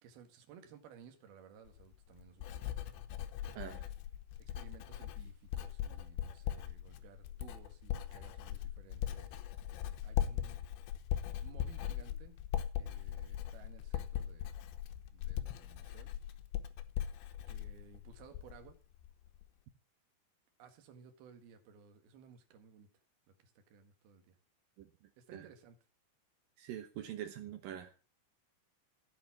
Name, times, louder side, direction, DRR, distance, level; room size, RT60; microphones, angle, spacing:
voice 1, 0.0-2.9 3.4-3.9 4.4-9.5 10.0-10.6 11.4-12.3 12.7-14.5 15.1-16.1 17.5-18.8 20.6-22.9 23.4-24.4 25.2-25.8, right 6 dB, 60° right, 5 dB, 3.2 m, -58 dB
Writing, 1.7-18.7 19.0-19.5, left 11 dB, 75° left, 3.0 m, -40 dB
voice 2, 26.6-28.0, right 10 dB, 85° right, 6 dB, 1.9 m, -44 dB
16.5 x 5.5 x 7.2 m, 0.36 s
omnidirectional pair, 5.8 m